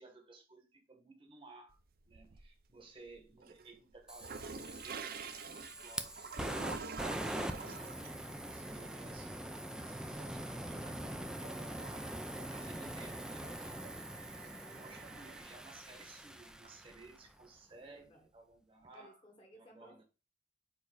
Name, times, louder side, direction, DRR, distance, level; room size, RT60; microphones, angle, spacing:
voice 1, 0.0-1.8 2.1-6.2 6.5-8.1 8.5-19.2 19.5-20.0, right 3 dB, 30° right, 1.1 m, -57 dB
sound 1, 1.7-2.7 3.1-15.4, right 5 dB, 55° right, 0.6 m, -49 dB
Fire, 4.1-17.2, right 1 dB, 5° right, 0.5 m, -43 dB
voice 2, 17.8-18.3 18.9-20.0, equal, 25° left, 1.2 m, -60 dB
4.7 x 4.7 x 4.8 m
head